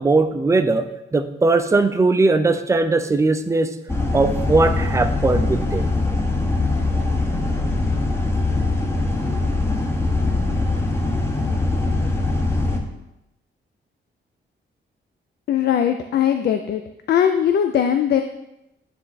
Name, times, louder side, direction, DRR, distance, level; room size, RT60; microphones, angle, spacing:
voice 1, 0.0-3.7 4.1-5.9, right 3 dB, 15° right, 8 dB, 0.4 m, -19 dB
sound 1, 3.9-12.8, left 2 dB, 10° left, 0.7 m, -22 dB
voice 2, 15.5-16.8 17.1-18.2, left 9 dB, 55° left, 7 dB, 0.4 m, -19 dB
9.5 x 3.4 x 4.0 m, 0.90 s
wide cardioid pair, 150°, 20 cm